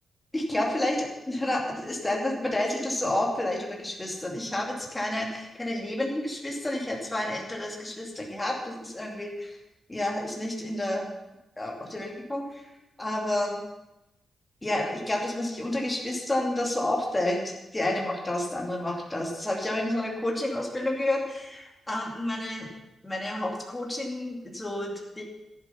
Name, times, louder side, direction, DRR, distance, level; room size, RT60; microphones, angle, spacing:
voice 1, 0.3-9.6 9.9-11.1 11.6-12.6 13.0-13.6 14.6-17.4 17.7-22.7 23.0-25.2, left 1 dB, 10° left, -1 dB, 2.5 m, -30 dB
13.5 x 11.5 x 5.7 m, 0.94 s
wide cardioid pair, 170°, 0 cm